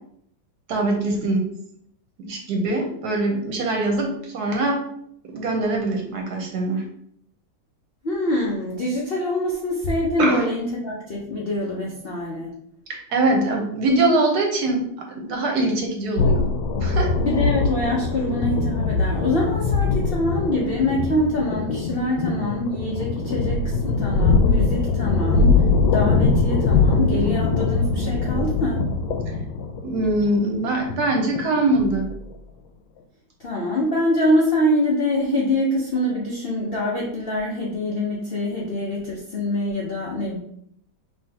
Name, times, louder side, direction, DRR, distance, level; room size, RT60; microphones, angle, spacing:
voice 1, 0.7-1.4 2.2-4.8 5.3-6.8 10.2-10.4 12.9-14.9 15.1-16.5 16.8-17.1 29.8-32.1, right 2 dB, 65° right, 2 dB, 1.2 m, -23 dB
voice 2, 8.0-12.5 17.2-28.8 33.4-40.4, left 1 dB, 60° left, -4 dB, 0.6 m, -24 dB
sound 1, 16.2-32.3, left 4 dB, 85° left, 1.3 m, -22 dB
5.5 x 3.0 x 2.8 m, 0.70 s
omnidirectional pair, 2.0 m